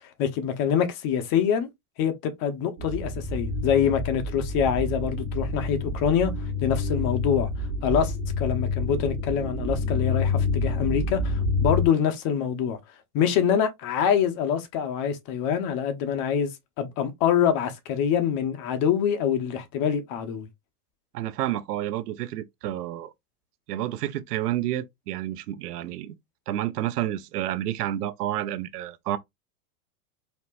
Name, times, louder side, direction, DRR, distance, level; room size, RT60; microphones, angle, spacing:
voice 1, 0.0-1.7 2.0-6.3 6.6-7.5 7.8-12.8 13.1-20.5, left 8 dB, 50° left, 1.0 m, -25 dB
sound 1, 2.8-11.9, left 3 dB, 65° right, 1.4 m, -28 dB
voice 2, 21.1-23.1 23.7-26.1 26.5-29.2, right 13 dB, 90° right, 0.6 m, -30 dB
4.3 x 2.9 x 2.5 m
hypercardioid pair, 110°, 46 cm